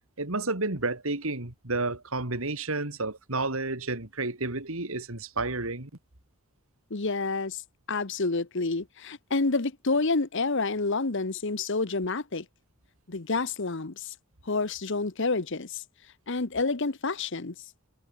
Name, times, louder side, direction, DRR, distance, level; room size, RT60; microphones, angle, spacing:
voice 1, 0.2-5.9, right 3 dB, 70° right, 3.0 m, -31 dB
voice 2, 6.9-7.6 7.9-12.4 13.1-14.1 14.5-15.8 16.3-17.5, left 3 dB, 55° left, 1.1 m, -28 dB
head